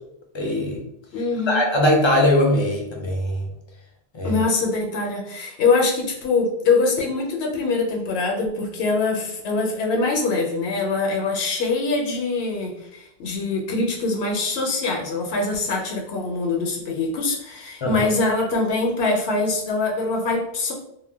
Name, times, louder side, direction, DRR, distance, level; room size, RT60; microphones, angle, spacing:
voice 1, 0.3-0.8 1.5-3.5 4.1-4.4 17.8-18.1, left 1 dB, 40° left, 0 dB, 0.4 m, -20 dB
voice 2, 1.1-1.6 4.2-20.7, left 3 dB, 85° left, 1 dB, 0.8 m, -23 dB
2.1 x 2.1 x 3.3 m, 0.75 s
omnidirectional pair, 1.0 m